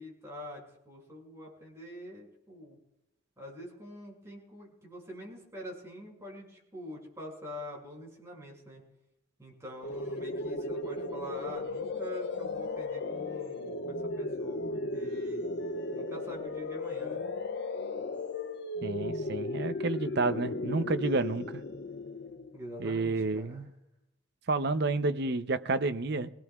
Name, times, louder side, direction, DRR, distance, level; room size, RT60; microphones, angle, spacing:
voice 1, 0.0-2.8 3.4-8.8 9.4-15.5 15.9-17.2 22.5-23.6, equal, 15° right, -3 dB, 5.9 m, -45 dB
sound 1, 9.8-22.6, left 2 dB, 55° left, 0.6 m, -35 dB
voice 2, 18.8-21.6 22.8-23.7 24.5-26.3, right 3 dB, 55° right, 11 dB, 0.7 m, -30 dB
24.5 x 18.5 x 2.4 m, 0.87 s
head